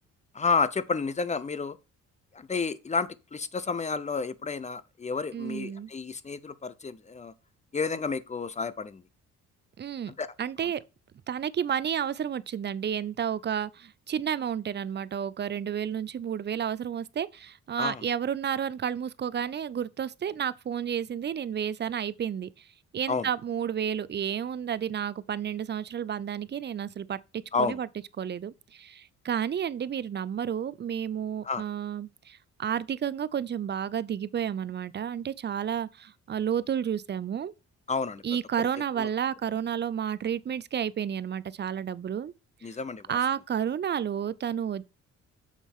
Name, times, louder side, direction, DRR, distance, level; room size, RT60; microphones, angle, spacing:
voice 1, 0.3-1.8 2.3-7.3 7.7-9.0 10.2-10.3 17.8-18.1 23.1-23.3 27.5-27.8 31.4-31.6 37.9-38.2 39.0-39.1 42.6-43.2, left 4 dB, 25° left, 0.7 m, -30 dB
voice 2, 5.3-5.9 9.8-10.1 10.4-10.8 11.3-22.7 22.9-27.9 28.2-37.5 38.2-42.3 43.1-44.9, right 8 dB, 35° right, 0.5 m, -31 dB
7.4 x 4.1 x 5.5 m
cardioid pair, 90°, 30 cm